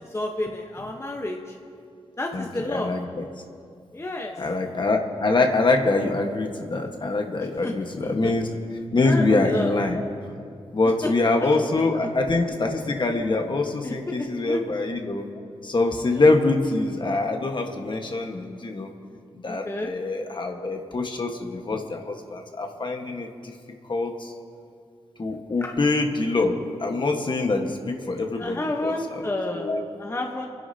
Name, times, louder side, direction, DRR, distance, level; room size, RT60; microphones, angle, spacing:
voice 1, 0.0-1.4 2.2-2.9 3.9-4.3 7.6-7.7 8.0-8.3 9.0-9.7 11.0-11.1 11.4-11.6 13.8-14.6 19.5-19.9 25.6-25.7 28.4-29.7 30.0-30.5, left 1 dB, 25° left, 1 dB, 1.1 m, -30 dB
voice 2, 2.3-3.2 4.4-8.5 8.9-10.1 10.7-15.3 15.6-18.9 19.4-23.5 23.9-24.3 25.2-29.8, left 3 dB, 45° left, 3 dB, 1.4 m, -24 dB
28.5 x 10.5 x 2.8 m, 2.3 s
cardioid pair, 60°, 11 cm